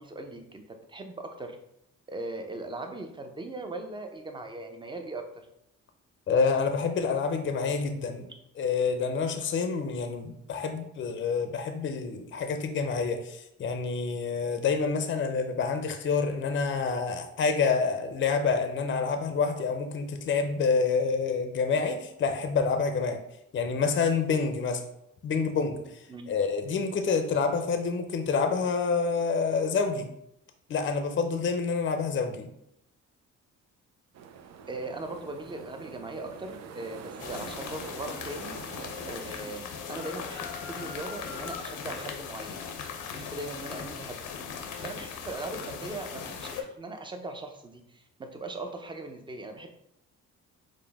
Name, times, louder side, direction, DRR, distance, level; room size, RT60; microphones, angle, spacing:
voice 1, 0.0-1.6 2.1-5.2 26.1-26.3 34.7-38.5 39.0-42.6 43.1-44.2 44.8-49.7, right 2 dB, 15° right, 5 dB, 0.6 m, -39 dB
voice 2, 6.3-8.3 8.6-23.2 23.5-24.8 25.2-26.0 26.3-30.1 30.7-32.5, left 5 dB, 40° left, 7 dB, 0.5 m, -27 dB
sound 1, 34.1-39.3, right 6 dB, 60° right, 0.5 m, -45 dB
sound 2, 37.2-46.6, left 6 dB, 80° left, 0.7 m, -38 dB
4.9 x 2.1 x 3.5 m, 0.79 s
cardioid pair, 90°, 30 cm